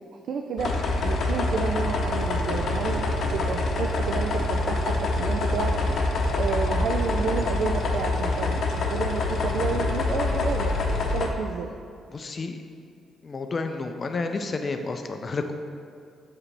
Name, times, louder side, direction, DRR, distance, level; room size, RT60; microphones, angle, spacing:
voice 1, 0.3-0.8 1.0-6.0 6.3-11.7, right 6 dB, 70° right, 4 dB, 0.3 m, -31 dB
sound 1, 0.6-11.3, left 2 dB, 65° left, 0.7 m, -25 dB
voice 2, 12.1-12.6 13.2-15.5, left 3 dB, 35° left, 6 dB, 0.4 m, -30 dB
7.3 x 4.7 x 3.3 m, 2.3 s
cardioid pair, 90°, 0 cm